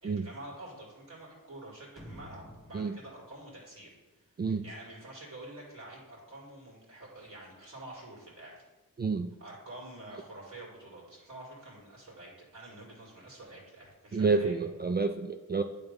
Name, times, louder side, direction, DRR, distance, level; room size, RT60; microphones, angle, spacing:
voice 1, 0.0-8.6 9.4-14.6, right 1 dB, 60° right, -6 dB, 2.2 m, -48 dB
sound 1, 2.0-4.8 5.1-5.2, equal, ahead, 1.2 m, -52 dB
voice 2, 9.0-9.3 14.1-15.6, right 4 dB, 30° right, 6 dB, 0.4 m, -29 dB
9.0 x 3.4 x 5.3 m, 1.2 s
cardioid pair, 75°, 34 cm